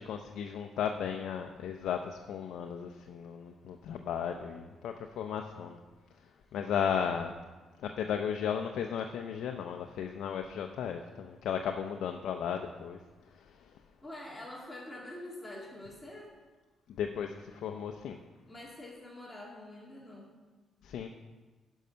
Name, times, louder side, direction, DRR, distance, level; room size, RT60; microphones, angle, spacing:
voice 1, 0.0-5.8 6.5-7.3 7.8-13.0 13.3-13.7 17.0-18.2 20.8-21.1, left 8 dB, 75° left, 4 dB, 0.6 m, -35 dB
voice 2, 14.0-16.4 18.5-20.3, left 1 dB, 15° left, -3 dB, 2.2 m, -46 dB
10.5 x 5.5 x 5.6 m, 1.3 s
cardioid pair, 90°, 0 cm